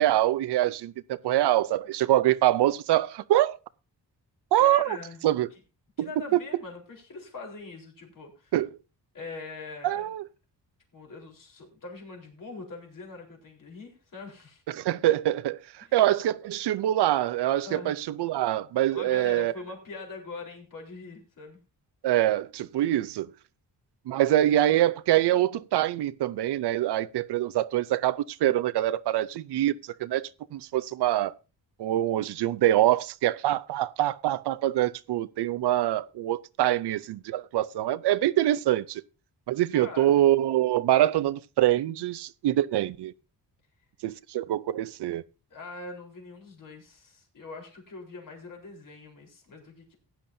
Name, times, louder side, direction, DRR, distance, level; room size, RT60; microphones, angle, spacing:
voice 1, 0.0-3.6 4.5-5.0 5.2-5.5 6.0-6.4 8.5-8.7 9.8-10.3 14.7-19.5 22.0-23.3 24.1-31.3 31.8-39.0 39.5-43.1 44.0-45.2, right 13 dB, 85° right, 0.6 m, -25 dB
voice 2, 4.6-5.2 6.0-8.5 9.1-10.1 10.9-14.6 15.8-15.9 17.6-17.9 18.9-21.6 39.7-40.2 45.5-50.0, left 3 dB, 55° left, 4.1 m, -42 dB
16.0 x 10.5 x 2.7 m
cardioid pair, 110°, 39 cm